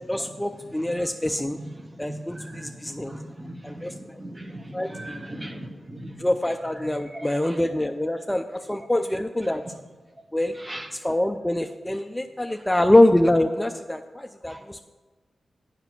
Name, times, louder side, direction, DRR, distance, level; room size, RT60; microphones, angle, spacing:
voice 1, 0.1-1.6 2.0-3.2 3.6-4.2 4.7-5.3 6.2-9.6 10.3-10.6 10.9-14.8, left 1 dB, 10° left, 0.4 m, -24 dB
voice 2, 0.6-6.3 6.8-7.6 10.6-10.9 12.5-12.6 14.5-14.6, right 1 dB, 20° right, 0.9 m, -39 dB
7.9 x 5.9 x 5.9 m
cardioid pair, 70°, 0 cm